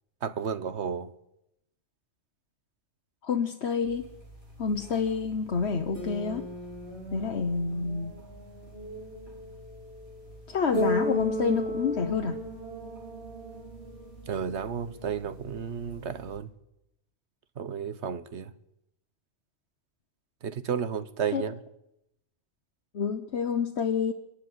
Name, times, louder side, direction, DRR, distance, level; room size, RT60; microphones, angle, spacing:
voice 1, 0.2-1.1 14.3-16.5 17.6-18.5 20.4-21.6, right 7 dB, 80° right, 1.3 m, -32 dB
voice 2, 3.2-4.1 4.6-6.5 7.1-8.1 10.5-12.4 21.3-21.4 22.9-24.1, left 5 dB, 75° left, 1.4 m, -28 dB
sound 1, 3.8-16.4, equal, 65° right, 7.1 m, -37 dB
24.5 x 12.0 x 9.8 m
omnidirectional pair, 1.1 m